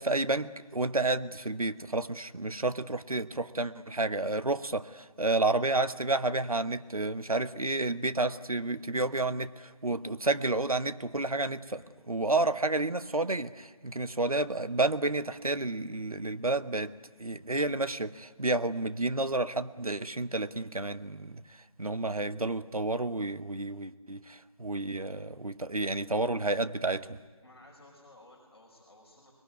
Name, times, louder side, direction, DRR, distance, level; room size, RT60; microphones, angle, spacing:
voice 1, 0.0-16.9 17.2-21.4 21.8-27.2, right 2 dB, 75° right, 1.1 m, -30 dB
voice 2, 27.4-29.3, left 1 dB, 45° left, 5.3 m, -55 dB
24.5 x 22.0 x 9.5 m
figure-of-eight pair, 165°, 19 cm